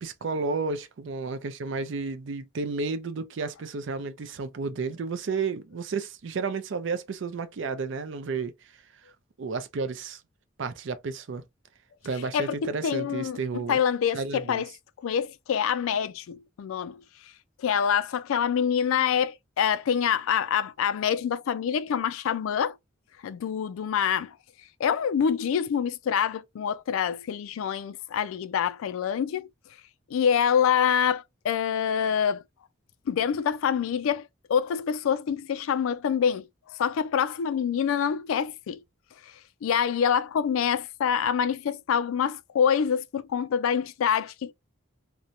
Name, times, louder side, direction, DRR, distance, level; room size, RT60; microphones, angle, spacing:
voice 1, 0.0-8.5 9.4-10.2 10.6-11.4 12.0-13.8 14.1-14.6, right 4 dB, 60° right, 0.4 m, -32 dB
voice 2, 12.3-14.7 15.0-17.0 17.6-22.8 23.2-24.3 24.8-29.5 30.1-32.4 33.1-38.8 39.2-39.3 39.6-44.5, left 8 dB, 75° left, 0.3 m, -26 dB
2.8 x 2.1 x 2.5 m
head